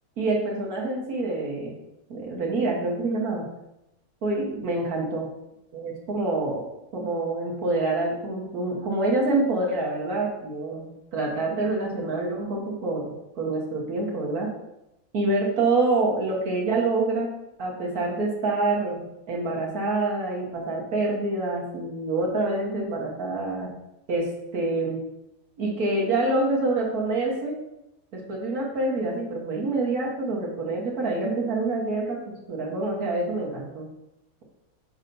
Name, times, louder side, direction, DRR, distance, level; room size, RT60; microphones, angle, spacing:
voice 1, 0.2-1.7 2.1-3.4 4.2-5.3 5.7-6.6 6.9-13.1 13.4-14.5 15.1-17.3 17.6-23.7 24.1-25.0 25.6-27.5 28.1-33.9, right 2 dB, 70° right, -3 dB, 1.6 m, -26 dB
6.4 x 6.1 x 2.6 m, 0.89 s
omnidirectional pair, 1.7 m